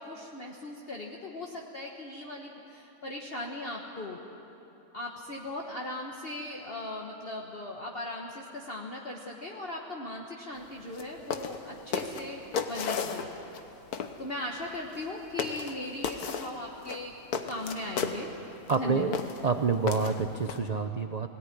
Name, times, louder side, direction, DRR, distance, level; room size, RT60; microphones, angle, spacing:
voice 1, 0.0-4.2 4.9-12.4 12.7-13.3 14.2-17.1 17.5-18.3 18.7-19.2, left 2 dB, 40° left, -1 dB, 1.4 m, -38 dB
sound 1, 10.9-11.0 11.3-11.6 11.9-13.6 13.9-14.1 14.9-15.1 15.4-15.7 16.0-16.5 16.8-18.2 18.7-18.8 19.1-19.4 19.9-20.6, left 6 dB, 75° left, 1.6 m, -33 dB
voice 2, 18.7-21.3, right 5 dB, 60° right, 7 dB, 0.4 m, -28 dB
18.5 x 17.5 x 9.8 m, 3.0 s
omnidirectional pair, 1.7 m